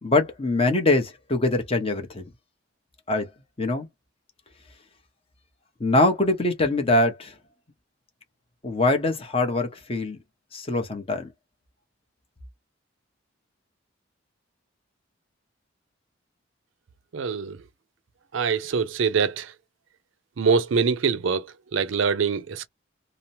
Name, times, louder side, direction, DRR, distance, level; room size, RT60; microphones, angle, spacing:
voice 1, 0.0-2.2 3.1-3.3 3.6-3.9 5.8-7.3 8.6-10.2 10.5-11.3, left 2 dB, 30° left, 0.8 m, -23 dB
voice 2, 17.1-17.6 18.3-19.5 20.4-22.7, right 5 dB, 80° right, 0.5 m, -24 dB
2.9 x 2.0 x 2.6 m
head